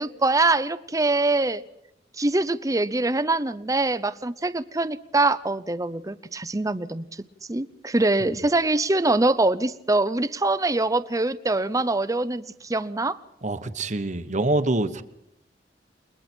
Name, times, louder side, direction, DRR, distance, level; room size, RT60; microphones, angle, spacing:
voice 1, 0.0-1.6 2.2-7.0 7.5-13.2, right 2 dB, 20° right, 14 dB, 0.8 m, -24 dB
voice 2, 13.4-15.0, right 2 dB, 45° right, 10 dB, 1.1 m, -25 dB
29.5 x 21.5 x 4.5 m, 0.79 s
head